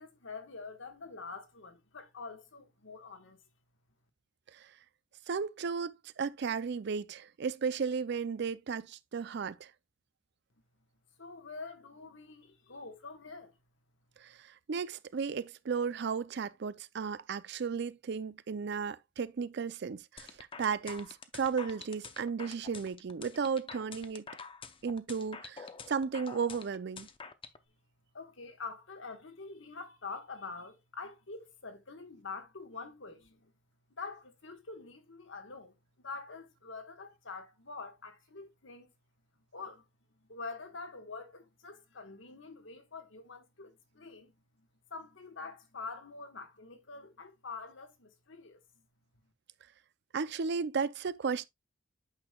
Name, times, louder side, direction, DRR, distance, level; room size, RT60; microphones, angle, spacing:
voice 1, 0.0-3.4 11.2-13.6 28.1-33.5 34.0-38.9 39.5-39.9 40.2-48.9, left 4 dB, 65° left, 1.4 m, -46 dB
voice 2, 5.3-9.7 14.2-24.2 24.8-27.1 50.1-51.4, right 5 dB, 55° right, 0.4 m, -34 dB
sound 1, 20.2-27.6, left 5 dB, 25° left, 0.6 m, -47 dB
8.7 x 6.2 x 2.3 m
head